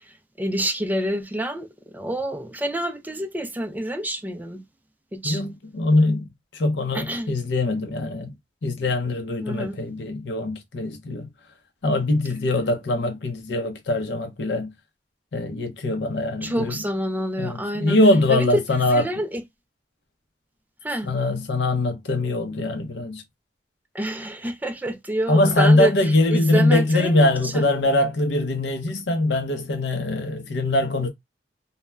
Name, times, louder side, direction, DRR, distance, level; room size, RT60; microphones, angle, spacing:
voice 1, 0.4-1.7 1.9-4.6 5.1-5.4 6.9-7.3 9.4-9.8 16.4-18.0 18.3-18.6 18.9-19.4 20.8-21.1 23.9-27.7, right 1 dB, 10° right, 0.4 m, -27 dB
voice 2, 5.2-6.3 6.5-8.3 8.6-11.3 11.8-14.7 15.3-16.8 17.4-19.0 21.0-23.2 25.3-31.1, left 2 dB, 75° left, 0.6 m, -22 dB
2.2 x 2.1 x 3.1 m
head